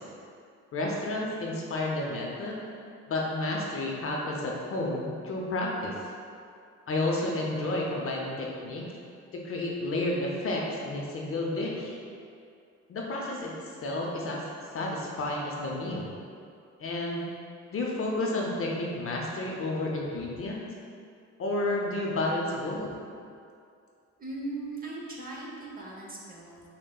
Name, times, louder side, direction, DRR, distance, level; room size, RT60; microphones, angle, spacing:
voice 1, 0.7-2.7 3.1-6.0 6.9-8.9 9.3-12.0 12.9-13.5 13.8-14.4 14.7-16.1 16.8-17.3 17.7-20.7 21.4-22.9, left 2 dB, 50° left, -2 dB, 0.6 m, -31 dB
voice 2, 24.2-26.6, right 2 dB, 30° right, -4 dB, 0.8 m, -39 dB
6.3 x 2.1 x 2.3 m, 2.4 s
cardioid pair, 90°, 30 cm